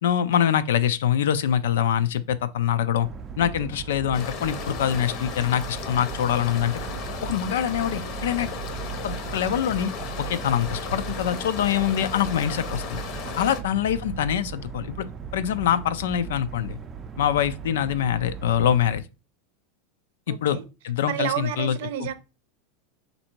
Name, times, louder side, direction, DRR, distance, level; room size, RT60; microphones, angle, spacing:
voice 1, 0.0-3.1 3.4-6.8 7.2-8.5 9.0-9.9 10.2-13.0 13.4-15.1 15.3-16.8 17.2-19.0 20.3-20.6 20.8-22.1, left 9 dB, 85° left, 0.4 m, -24 dB
sound 1, 3.0-19.0, right 7 dB, 25° right, 0.5 m, -37 dB
voice 2, 3.4-3.7 13.3-13.6 20.3-20.6 21.0-22.1, right 11 dB, 70° right, 0.6 m, -31 dB
sound 2, 4.1-13.6, left 6 dB, 50° left, 0.7 m, -36 dB
4.2 x 2.7 x 4.4 m
supercardioid pair, 135°, 0 cm